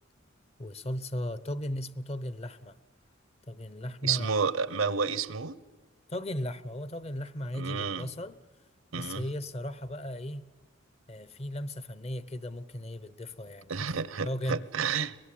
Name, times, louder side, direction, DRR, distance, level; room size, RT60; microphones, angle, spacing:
voice 1, 0.6-2.8 3.5-4.5 6.1-8.4 8.9-10.5 11.1-13.9 14.2-14.7, left 1 dB, 30° left, 0.7 m, -36 dB
voice 2, 4.0-5.6 7.5-8.1 8.9-9.2 13.7-15.1, right 5 dB, 85° right, 0.8 m, -30 dB
23.0 x 20.5 x 8.5 m
head